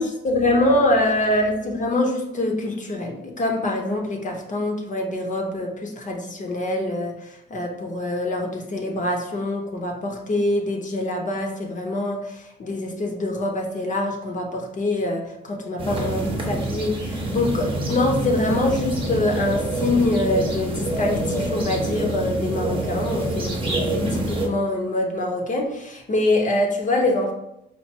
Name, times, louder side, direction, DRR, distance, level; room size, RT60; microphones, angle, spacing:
voice 1, 0.0-7.1 7.5-27.3, left 1 dB, 40° left, 1 dB, 0.8 m, -24 dB
sound 1, 15.8-24.5, right 1 dB, 25° right, 0.9 m, -26 dB
4.5 x 2.5 x 2.9 m, 0.86 s
cardioid pair, 90°, 20 cm